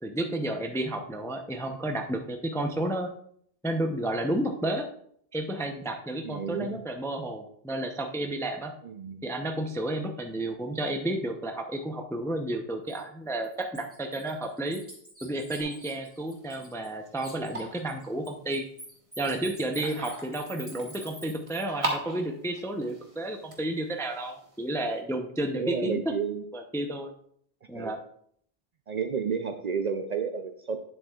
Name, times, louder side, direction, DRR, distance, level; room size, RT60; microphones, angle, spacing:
voice 1, 0.0-3.1 3.6-4.9 5.3-8.7 9.2-14.8 15.2-18.6 19.2-26.1 26.5-27.1 27.7-28.0, right 1 dB, 5° left, 4 dB, 0.4 m, -31 dB
voice 2, 6.2-6.8 8.8-9.3 25.5-26.4 27.7-27.9 28.9-30.8, right 6 dB, 55° right, 6 dB, 0.5 m, -31 dB
Bird, 12.9-13.0 13.4-16.9 17.2-21.9, equal, 15° right, 2.0 m, -47 dB
sound 1, 15.6-25.0, right 2 dB, 30° right, 1.3 m, -40 dB
9.5 x 7.3 x 2.3 m, 0.66 s
omnidirectional pair, 1.1 m